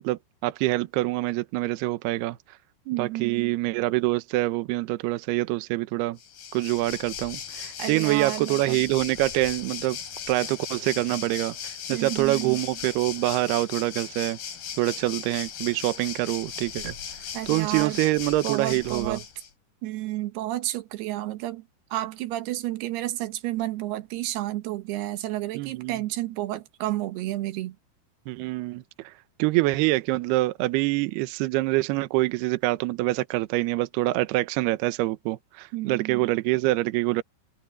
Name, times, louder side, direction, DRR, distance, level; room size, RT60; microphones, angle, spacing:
voice 1, 0.0-2.4 3.0-6.2 6.5-10.0 10.3-14.4 14.8-16.9 17.5-19.2 25.6-26.0 28.3-29.1 29.4-37.2, right 18 dB, 90° right, 2.3 m, -25 dB
voice 2, 2.9-3.6 7.8-8.8 11.9-12.6 17.3-18.0 18.4-19.2 19.8-21.6 21.9-27.8 35.7-36.3, right 15 dB, 70° right, 2.6 m, -31 dB
Waves surf, 6.2-19.5, left 8 dB, 55° left, 4.4 m, -37 dB
omnidirectional pair, 5.8 m